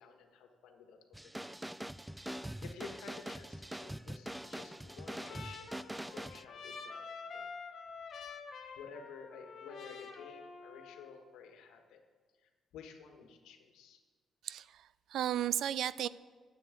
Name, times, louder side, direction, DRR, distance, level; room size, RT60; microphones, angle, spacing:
voice 1, 0.0-1.5 2.6-7.1 7.3-7.5 8.7-12.0 12.4-14.0, left 6 dB, 90° left, 5 dB, 1.5 m, -52 dB
sound 1, 1.1-6.4, right 1 dB, 5° right, 0.4 m, -43 dB
Trumpet, 4.4-11.2, left 5 dB, 60° left, 1.3 m, -48 dB
voice 2, 14.4-16.1, right 11 dB, 75° right, 18 dB, 0.4 m, -34 dB
10.5 x 8.3 x 8.1 m, 1.5 s
cardioid pair, 90°, 0 cm